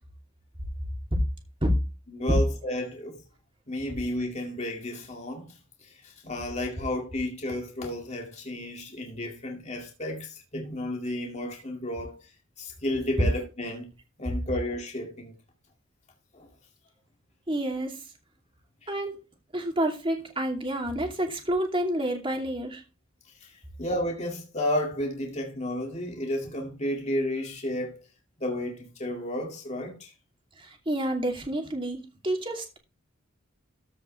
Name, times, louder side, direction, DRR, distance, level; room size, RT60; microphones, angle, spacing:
voice 1, 2.1-3.2 3.7-12.2 12.6-13.9 14.2-15.3 16.3-16.5 23.4-28.0 28.4-30.1, left 1 dB, 30° left, 2.2 m, -32 dB
voice 2, 17.5-18.0 18.9-19.2 19.5-22.8 30.6-32.8, right 1 dB, 25° right, 2.7 m, -29 dB
14.0 x 6.2 x 3.3 m
head